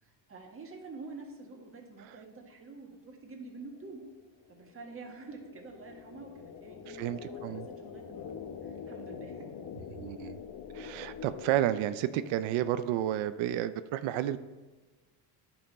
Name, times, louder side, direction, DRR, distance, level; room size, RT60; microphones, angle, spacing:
voice 1, 0.0-4.0 4.5-8.3 8.6-9.5, right 3 dB, 30° right, 1 dB, 1.7 m, -47 dB
sound 1, 3.6-12.5, left 7 dB, 45° left, 0.8 m, -45 dB
voice 2, 6.9-7.7 9.9-10.4 10.7-14.4, right 12 dB, 85° right, 13 dB, 0.6 m, -31 dB
10.0 x 5.8 x 4.1 m, 1.3 s
cardioid pair, 120°, 45 cm